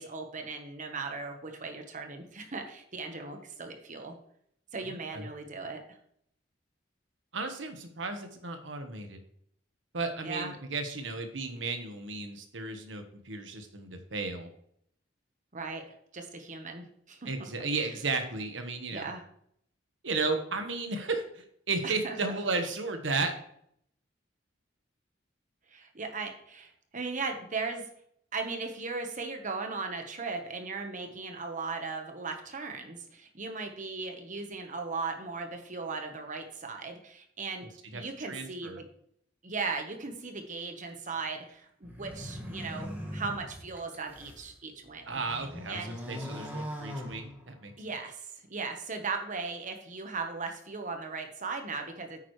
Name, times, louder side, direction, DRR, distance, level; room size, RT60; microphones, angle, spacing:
voice 1, 0.0-4.2 4.7-6.0 10.2-10.5 15.5-15.8 16.1-17.3 18.9-19.2 21.8-22.2 25.7-27.8 28.3-37.7 37.9-38.8 39.4-45.2 45.7-46.0 47.8-52.2, right 4 dB, 45° right, 5 dB, 1.2 m, -37 dB
voice 2, 4.8-5.3 7.3-9.2 9.9-14.5 17.2-19.1 20.0-23.3 37.9-38.0 38.3-38.8 45.1-47.7, right 3 dB, 80° right, 6 dB, 1.3 m, -34 dB
sound 1, 41.8-44.5 44.9-47.8, equal, 10° right, 1.8 m, -41 dB
9.1 x 9.1 x 3.2 m, 0.69 s
head